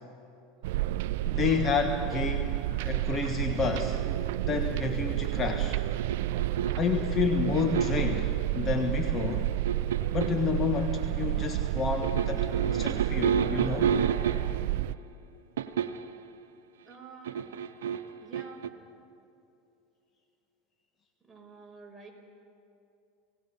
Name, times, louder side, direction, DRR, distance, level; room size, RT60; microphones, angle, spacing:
sound 1, 0.6-15.0, right 15 dB, 70° right, 0.4 m, -30 dB
voice 1, 1.2-2.6 2.8-4.0 4.5-5.8 6.8-9.5 10.1-13.9, left 6 dB, 35° left, 5 dB, 1.4 m, -30 dB
sound 2, 5.9-6.9 7.5-8.2 9.2-10.4 12.0-14.7 15.6-16.1 17.2-18.7, right 7 dB, 85° right, 0.9 m, -30 dB
voice 2, 16.8-17.5 18.2-18.7 21.2-22.1, right 4 dB, 5° right, -2 dB, 5.3 m, -49 dB
29.0 x 18.0 x 5.5 m, 2.8 s
hypercardioid pair, 105°, 0 cm